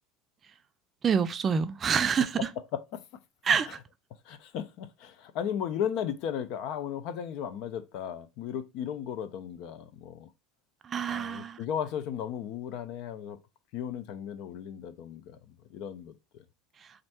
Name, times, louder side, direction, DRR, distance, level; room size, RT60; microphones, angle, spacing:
voice 1, 1.0-2.3 3.5-3.8 10.9-11.6, right 6 dB, 35° right, 0.4 m, -26 dB
voice 2, 2.4-3.2 3.6-3.7 4.2-10.3 11.1-13.4 13.7-15.4 15.7-16.4, left 9 dB, 65° left, 0.6 m, -35 dB
4.3 x 2.6 x 4.2 m
supercardioid pair, 100°, 0 cm